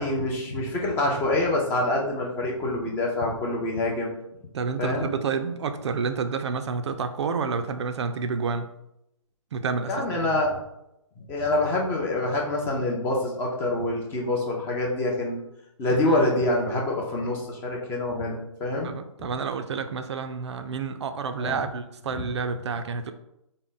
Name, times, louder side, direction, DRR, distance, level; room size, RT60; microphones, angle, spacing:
voice 1, 0.0-4.1 4.8-5.1 9.9-10.6 11.3-15.4 15.8-18.9 21.4-21.6 22.2-22.3, left 2 dB, 15° left, -1 dB, 0.4 m, -26 dB
voice 2, 4.5-8.7 9.5-10.0 15.9-16.2 18.8-23.1, right 5 dB, 55° right, 8 dB, 0.4 m, -29 dB
3.8 x 2.1 x 3.7 m, 0.83 s
hypercardioid pair, 145°, 17 cm